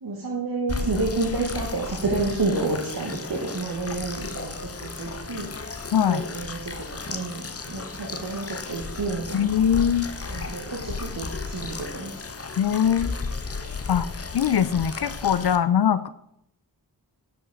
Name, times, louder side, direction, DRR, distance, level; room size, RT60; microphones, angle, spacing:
voice 1, 0.0-5.5 6.0-9.5 10.3-12.2, right 3 dB, 60° right, -2 dB, 1.4 m, -30 dB
sound 1, 0.7-15.6, left 4 dB, 35° left, 0.8 m, -34 dB
voice 2, 5.9-6.2 9.3-10.1 12.6-13.2 13.9-14.1 14.3-16.1, left 8 dB, 65° left, 14 dB, 0.5 m, -22 dB
8.8 x 5.5 x 3.9 m, 0.75 s
wide cardioid pair, 50°, 41 cm